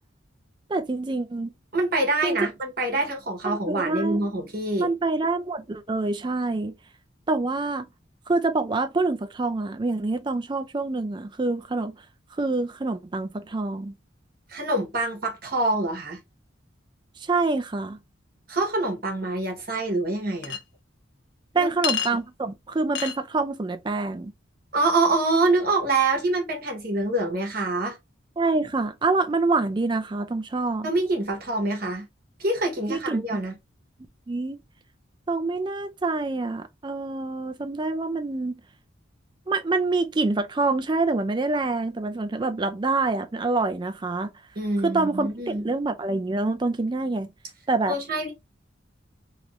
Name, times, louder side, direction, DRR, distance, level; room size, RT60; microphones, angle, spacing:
voice 1, 0.7-1.5 2.2-2.4 3.4-4.2 4.8-6.7 7.3-7.9 8.3-12.0 12.4-14.0 17.2-18.0 21.5-24.3 28.4-30.9 32.9-33.4 34.3-34.6 35.3-38.6 39.5-44.3 44.8-47.3 47.7-48.0, right 3 dB, 25° right, 0.4 m, -26 dB
voice 2, 1.7-4.9 14.5-16.2 18.5-20.6 21.5-21.7 24.7-28.0 30.8-32.1 32.4-33.5 44.6-45.7 47.9-48.3, right 2 dB, 50° right, 1.1 m, -25 dB
Chink clink, 20.4-20.6 21.8-22.1 22.9-23.2, left 8 dB, 55° left, 0.5 m, -27 dB
2.9 x 2.6 x 3.0 m
head